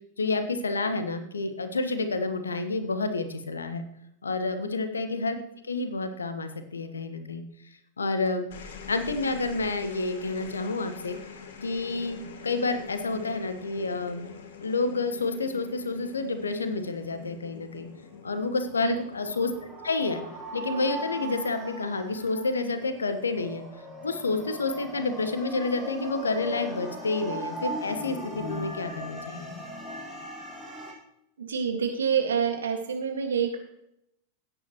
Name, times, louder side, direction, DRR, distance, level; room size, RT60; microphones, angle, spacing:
voice 1, 0.2-3.8 4.2-5.4 5.7-7.4 8.0-8.5 8.9-11.2 11.6-14.3 14.6-17.9 18.2-19.5 19.8-20.2 20.5-23.6 24.0-29.5, left 3 dB, 75° left, 9 dB, 1.2 m, -29 dB
sound 1, 8.2-20.9 22.1-22.5, left 6 dB, 60° left, 1.5 m, -45 dB
sound 2, 18.6-30.9, equal, 5° left, 4.5 m, -39 dB
voice 2, 31.4-33.6, right 7 dB, 70° right, 4 dB, 1.8 m, -27 dB
16.5 x 9.1 x 3.0 m, 0.79 s
figure-of-eight pair, 90°, 0 cm